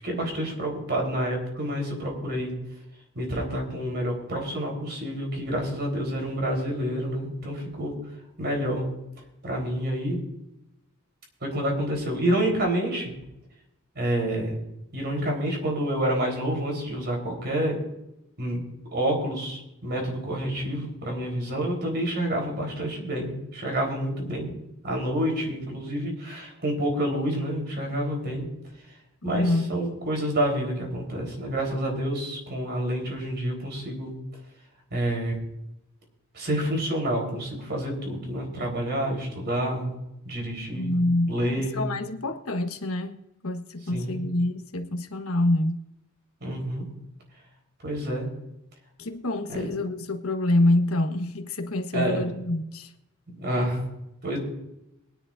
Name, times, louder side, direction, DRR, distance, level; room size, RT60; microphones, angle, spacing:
voice 1, 0.0-2.5 3.1-7.9 8.4-8.9 9.4-10.2 11.4-13.1 14.0-14.6 14.9-17.8 18.4-18.6 18.9-24.5 24.8-28.4 29.2-34.1 34.9-35.4 36.3-39.9 40.2-41.9 43.9-44.2 46.4-46.9 47.8-48.3 49.5-49.7 51.9-52.2 53.3-53.8 54.2-54.4, right 1 dB, 50° right, 4.0 m, -28 dB
voice 2, 29.2-29.7 40.7-41.3 41.6-45.8 49.0-52.9, left 1 dB, 80° left, 1.3 m, -26 dB
22.5 x 10.5 x 2.6 m
head